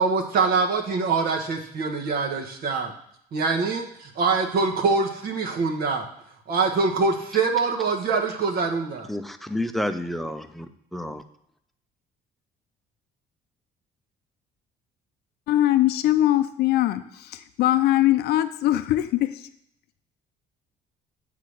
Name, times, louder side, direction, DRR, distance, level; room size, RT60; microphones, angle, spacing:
voice 1, 0.0-2.9 3.3-6.0 6.5-9.1, right 4 dB, 60° right, 1.3 m, -24 dB
voice 2, 9.1-11.2, left 1 dB, ahead, 0.5 m, -30 dB
voice 3, 15.5-19.5, left 14 dB, 70° left, 0.5 m, -21 dB
8.3 x 3.8 x 6.3 m
cardioid pair, 110°, 17 cm